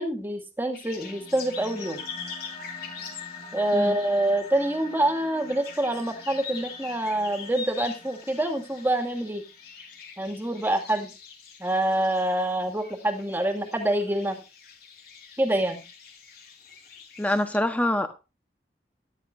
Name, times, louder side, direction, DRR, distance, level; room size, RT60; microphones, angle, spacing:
voice 1, 0.0-2.0 3.5-9.4 10.2-11.1 11.6-14.4 15.4-15.8, right 1 dB, 10° right, 5 dB, 2.5 m, -26 dB
sound 1, 0.7-17.6, left 6 dB, 60° left, 4.5 m, -44 dB
sound 2, 0.9-9.9, left 4 dB, 35° left, 3.8 m, -44 dB
voice 2, 17.2-18.1, left 1 dB, 10° left, 8 dB, 1.4 m, -25 dB
13.5 x 12.0 x 2.8 m, 0.28 s
head